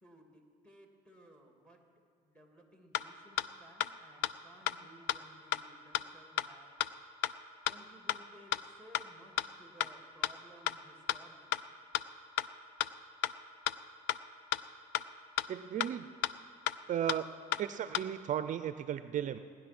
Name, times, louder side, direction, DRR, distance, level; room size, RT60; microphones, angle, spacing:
voice 1, 0.0-1.8 2.2-6.7 7.6-11.6, equal, 5° left, 2 dB, 2.5 m, -59 dB
sound 1, 2.9-3.0 3.4-3.5 3.8-3.9 4.2-4.3 4.7-4.8 5.1-5.2 5.5-5.6 5.9-6.0 6.4-6.5 6.8-6.9 7.2-7.3 7.7-7.8 8.1-8.2 8.5-8.6 8.9-9.0 9.4-9.5 9.8-9.9 10.2-10.3 10.7-10.8 11.1-11.2 11.5-11.6 11.9-12.0 12.4-12.5 12.8-12.9 13.2-13.3 13.7-13.8 14.1-14.2 14.5-14.6 14.9-15.0 15.4-15.5 15.8-15.9 16.2-16.3 16.7-16.8 17.1-17.2 17.5-17.6 17.9-18.0, left 13 dB, 85° left, 0.5 m, -31 dB
voice 2, 15.5-16.1 16.9-19.4, right 10 dB, 50° right, 11 dB, 0.5 m, -35 dB
17.5 x 10.5 x 6.1 m, 2.2 s
cardioid pair, 110°, 17 cm